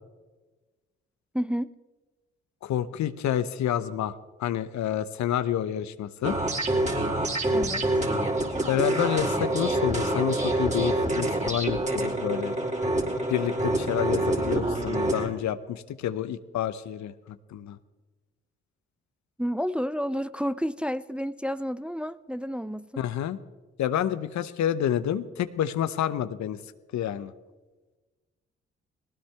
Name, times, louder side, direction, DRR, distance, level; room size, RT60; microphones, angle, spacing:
voice 1, 1.3-1.7 7.5-8.0 19.4-23.0, equal, 5° right, 15 dB, 0.6 m, -30 dB
voice 2, 2.6-6.4 8.7-12.6 13.3-17.8 23.0-23.4 23.8-26.6 26.9-27.3, left 10 dB, 65° left, 14 dB, 0.9 m, -29 dB
sound 1, 6.2-15.3, right 1 dB, 25° right, 3.6 m, -26 dB
19.5 x 18.0 x 3.4 m, 1.2 s
hypercardioid pair, 40°, 30 cm